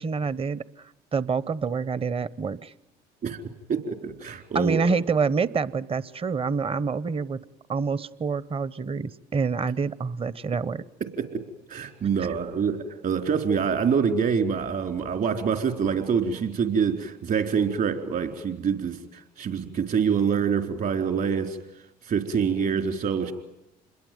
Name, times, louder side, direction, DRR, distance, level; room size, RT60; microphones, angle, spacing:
voice 1, 0.0-2.7 4.5-10.8, right 5 dB, 30° right, 19 dB, 1.0 m, -27 dB
voice 2, 3.7-4.9 11.0-11.4 11.7-21.6 22.0-23.3, right 6 dB, 55° right, 6 dB, 4.1 m, -26 dB
27.5 x 21.5 x 9.4 m, 0.88 s
supercardioid pair, 75°, 19 cm